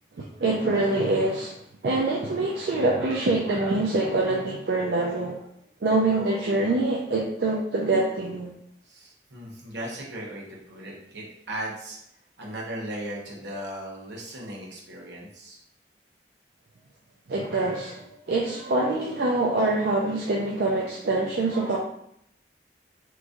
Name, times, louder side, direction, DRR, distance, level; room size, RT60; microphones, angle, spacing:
voice 1, 0.4-1.5 1.8-5.4 5.8-8.5 17.3-21.8, right 2 dB, 70° right, -2 dB, 0.4 m, -25 dB
voice 2, 8.8-12.0 12.4-15.6, right 1 dB, 85° right, -3 dB, 1.0 m, -37 dB
3.0 x 2.5 x 3.6 m, 0.74 s
head